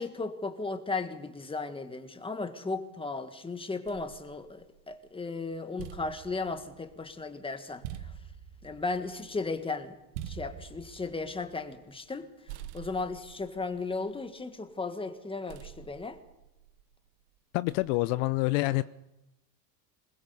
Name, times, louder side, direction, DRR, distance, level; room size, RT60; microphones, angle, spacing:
voice 1, 0.0-7.8 8.6-10.0 10.3-12.3 12.7-16.2, left 3 dB, 10° left, 1.7 m, -35 dB
sound 1, 3.9-5.1 5.5-12.2 12.5-14.7 15.5-17.0 17.7-18.1, right 10 dB, 75° right, 1.4 m, -47 dB
voice 2, 17.5-18.8, left 20 dB, 60° left, 0.7 m, -27 dB
21.0 x 20.5 x 7.0 m
supercardioid pair, 115°, 50 cm